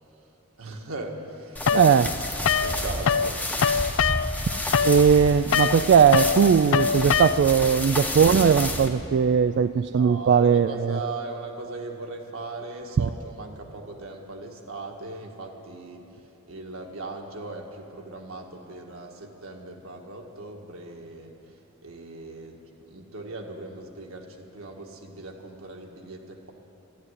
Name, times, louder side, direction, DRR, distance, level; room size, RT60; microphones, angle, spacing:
voice 1, 0.6-3.9 4.3-4.9 9.8-16.1 16.5-21.3 21.8-22.6 22.9-26.5, right 2 dB, 80° right, 2 dB, 1.6 m, -39 dB
sound 1, 1.6-8.9, left 1 dB, 10° left, 0.9 m, -31 dB
sound 2, 1.7-3.3 3.6-7.7, left 6 dB, 65° left, 0.4 m, -24 dB
voice 2, 1.7-2.1 4.8-11.0 13.0-13.1, right 7 dB, 55° right, 11 dB, 0.3 m, -19 dB
12.0 x 11.5 x 9.7 m, 2.9 s
head